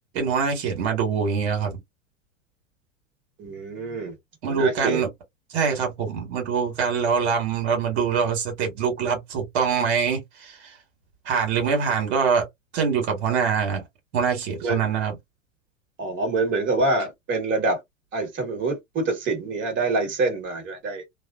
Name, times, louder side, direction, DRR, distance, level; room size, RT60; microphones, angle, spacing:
voice 1, 0.1-1.7 4.4-5.1 5.5-10.5 11.2-12.5 12.7-13.8 14.1-15.1, right 6 dB, 60° right, 1.6 m, -24 dB
voice 2, 3.4-4.1 4.4-5.0 14.6-14.9 16.0-17.8 18.1-21.1, right 3 dB, 30° right, 1.6 m, -26 dB
3.0 x 2.3 x 2.4 m
hypercardioid pair, 95°, 37 cm